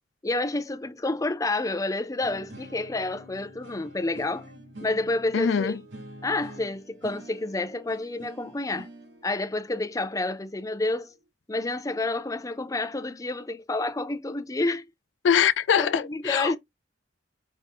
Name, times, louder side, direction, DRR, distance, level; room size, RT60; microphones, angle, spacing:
voice 1, 0.2-4.5 4.8-5.8 6.2-8.9 9.2-11.1 11.5-14.8 15.8-16.6, left 2 dB, 20° left, 0.5 m, -29 dB
sound 1, 2.2-11.2, right 1 dB, 75° right, 1.5 m, -47 dB
voice 2, 5.3-5.8 15.2-16.5, left 7 dB, 85° left, 0.4 m, -23 dB
5.2 x 2.6 x 3.5 m
head